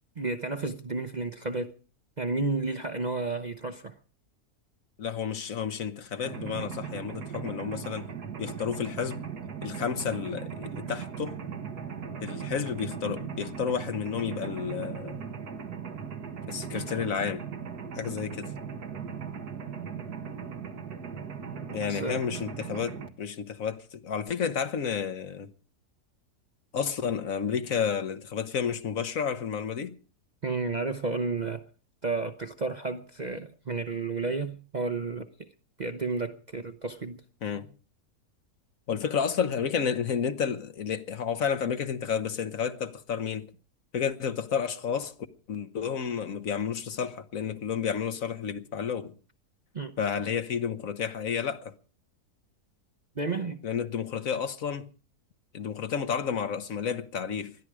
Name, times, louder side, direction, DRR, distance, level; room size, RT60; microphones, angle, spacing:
voice 1, 0.2-1.7 2.2-4.0 21.9-22.2 30.4-31.7 32.0-35.5 35.8-37.2 49.7-49.9 53.2-53.6, right 3 dB, 35° right, 0.7 m, -32 dB
voice 2, 5.0-8.1 8.4-9.2 9.6-11.4 12.2-15.3 16.5-17.4 17.9-18.5 21.7-25.5 26.7-30.0 37.4-37.7 38.9-43.5 43.9-45.1 45.5-49.1 50.0-51.7 53.6-54.9 55.5-57.5, left 7 dB, 60° left, 1.4 m, -31 dB
Mechanisms, 6.2-23.1, right 6 dB, 85° right, 1.9 m, -38 dB
20.5 x 13.5 x 4.8 m
omnidirectional pair, 1.6 m